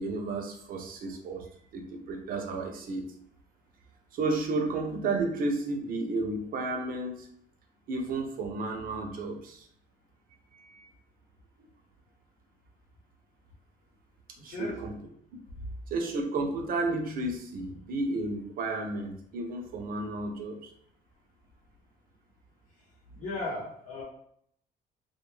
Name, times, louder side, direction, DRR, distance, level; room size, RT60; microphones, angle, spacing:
voice 1, 0.0-1.5 1.7-3.1 4.1-7.3 7.9-9.7 10.5-10.9 14.4-14.9 15.3-15.4 15.9-20.7, right 2 dB, 60° right, 3 dB, 0.6 m, -32 dB
voice 2, 14.4-14.7 23.1-24.0, left 2 dB, 55° left, -6 dB, 0.8 m, -36 dB
2.2 x 2.2 x 3.1 m, 0.67 s
cardioid pair, 110°, 17 cm